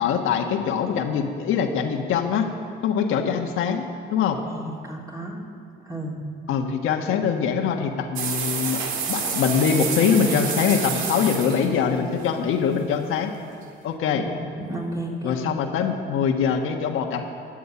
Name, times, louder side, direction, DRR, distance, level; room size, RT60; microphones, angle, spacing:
voice 1, 0.0-2.5 2.8-3.8 4.1-4.4 6.5-13.3 13.8-14.2 15.2-17.3, left 7 dB, 85° left, 3 dB, 1.4 m, -23 dB
voice 2, 4.5-5.4 5.8-6.2 14.2-15.4, right 1 dB, 15° right, -2 dB, 3.1 m, -33 dB
sound 1, 8.1-13.1, right 6 dB, 90° right, 1.6 m, -29 dB
12.5 x 7.5 x 9.8 m, 2.3 s
cardioid pair, 80°, 21 cm